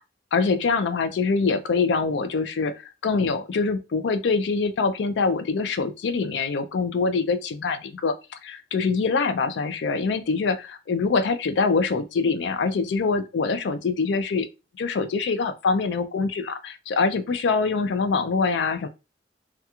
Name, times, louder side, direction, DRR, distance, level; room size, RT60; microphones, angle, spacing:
voice 1, 0.3-8.1 8.4-14.5 14.8-18.9, left 4 dB, 85° left, 0.4 m, -24 dB
2.8 x 2.3 x 2.3 m
head